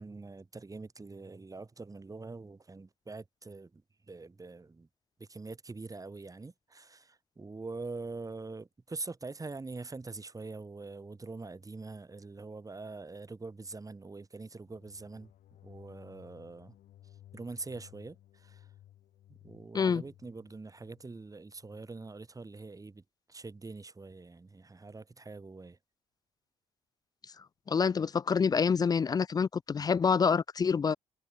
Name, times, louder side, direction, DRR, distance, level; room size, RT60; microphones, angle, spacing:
voice 1, 0.0-4.9 5.2-15.3 15.6-16.7 17.3-18.7 19.3-23.0 23.3-25.8, right 3 dB, 25° right, 3.1 m, -44 dB
sound 1, 14.6-21.9, left 12 dB, 70° left, 5.2 m, -58 dB
voice 2, 27.7-31.0, left 6 dB, 25° left, 0.3 m, -27 dB
supercardioid pair, 60°, 14 cm